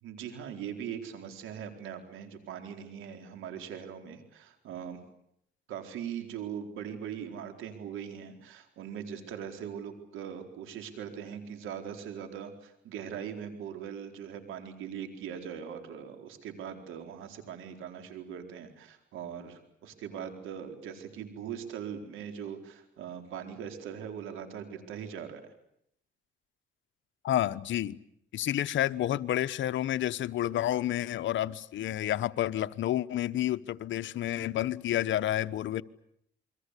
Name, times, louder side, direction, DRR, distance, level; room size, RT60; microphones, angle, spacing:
voice 1, 0.0-5.0 5.7-25.4, right 8 dB, 85° right, 6 dB, 4.3 m, -41 dB
voice 2, 27.2-28.0 28.3-35.8, left 12 dB, 75° left, 13 dB, 1.0 m, -30 dB
28.5 x 23.0 x 8.3 m, 0.73 s
cardioid pair, 90°, 20 cm